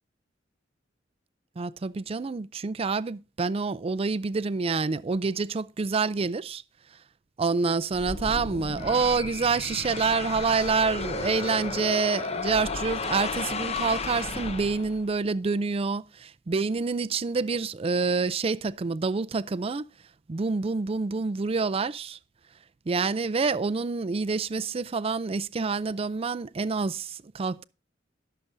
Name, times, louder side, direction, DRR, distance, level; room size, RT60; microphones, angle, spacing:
voice 1, 1.6-6.6 7.4-19.8 20.3-22.2 22.9-27.6, right 4 dB, 30° right, 0.4 m, -27 dB
sound 1, 7.9-15.2, left 4 dB, 35° left, 0.8 m, -33 dB
18.0 x 6.8 x 2.6 m
head